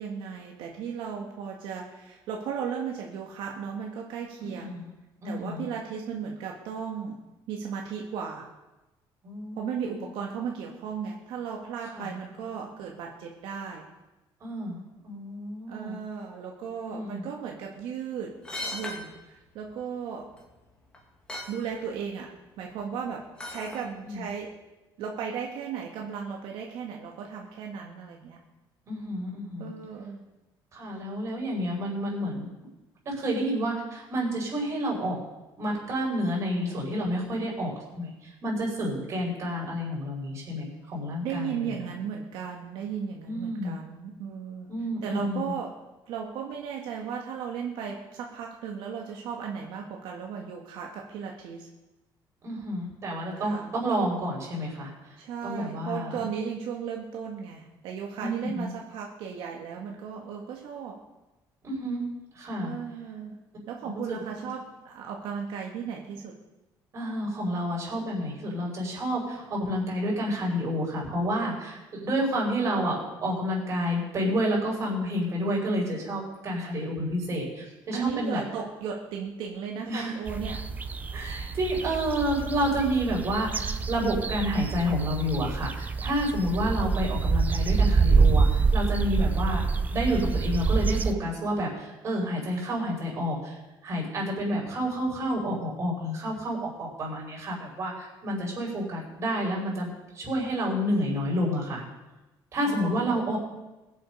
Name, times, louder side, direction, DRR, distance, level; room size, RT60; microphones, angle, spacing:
voice 1, 0.0-4.8 5.2-7.2 7.5-8.5 9.5-13.9 15.7-18.3 18.7-20.3 21.5-24.5 25.0-28.4 29.6-30.2 41.2-44.7 45.0-45.7 46.1-51.7 53.4-53.7 55.2-61.0 62.6-63.4 63.7-66.4 77.9-80.6 102.6-103.3, right 7 dB, 80° right, 0 dB, 1.7 m, -35 dB
voice 2, 4.4-4.9 5.2-5.7 9.2-10.0 11.9-12.1 14.4-16.0 16.9-17.3 24.0-24.2 28.9-29.7 30.7-32.5 33.0-35.2 35.6-41.8 43.2-43.8 44.7-45.5 52.4-56.2 58.2-58.7 61.6-62.0 62.3-62.7 64.1-64.2 66.9-78.4 79.8-80.2 81.1-89.6 89.9-93.6 93.8-99.9 100.1-101.8 102.5-103.4, equal, 35° right, -3 dB, 5.3 m, -29 dB
sound 1, 18.4-19.0 20.3-20.4 20.9-21.0 21.3-21.5 23.4-23.8 24.3-24.4, left 2 dB, 10° left, 2.4 m, -36 dB
sound 2, 80.3-91.1, right 4 dB, 20° right, 0.5 m, -26 dB
21.0 x 7.7 x 5.4 m, 1.0 s
cardioid pair, 165°, 9 cm